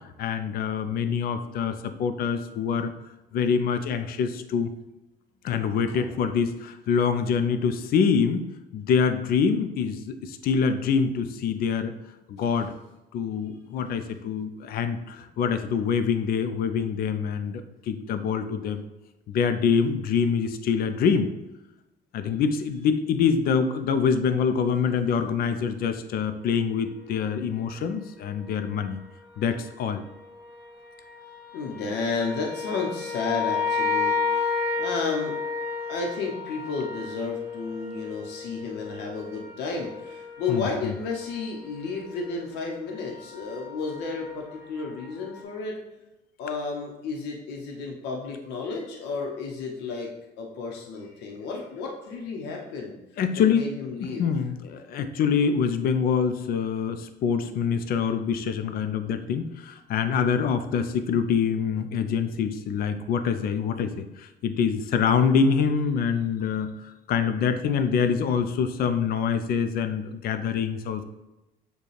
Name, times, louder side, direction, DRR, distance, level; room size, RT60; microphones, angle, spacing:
voice 1, 0.2-2.9 3.3-4.7 5.4-8.5 8.7-11.9 12.3-12.7 13.1-18.8 19.3-21.3 22.1-29.0 29.4-30.0 40.5-40.9 53.2-53.7 54.0-66.7 67.1-71.0, left 6 dB, 60° left, 9 dB, 0.5 m, -25 dB
sound 1, 28.3-28.5 29.3-45.4, left 5 dB, 10° right, 1.1 m, -33 dB
voice 2, 31.5-35.3 35.9-45.8 46.4-50.1 50.4-53.0 53.5-54.3, left 4 dB, 85° left, 0 dB, 0.8 m, -32 dB
6.9 x 2.3 x 3.2 m, 0.98 s
cardioid pair, 110°, 17 cm